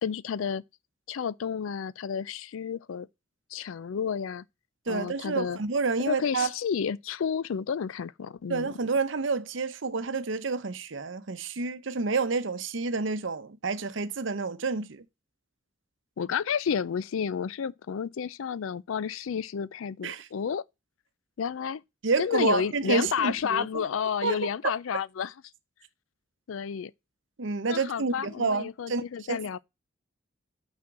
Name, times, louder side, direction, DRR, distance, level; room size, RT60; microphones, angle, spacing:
voice 1, 0.0-0.6 1.1-3.1 3.5-4.4 4.9-5.6 6.1-8.7 16.2-20.6 21.4-21.8 22.2-25.3 26.5-26.9 27.7-29.6, left 7 dB, 80° left, 0.4 m, -31 dB
voice 2, 4.9-6.5 8.5-15.0 20.0-20.3 22.0-23.8 24.2-24.5 27.4-29.6, right 4 dB, 70° right, 0.7 m, -29 dB
6.1 x 4.2 x 5.9 m
head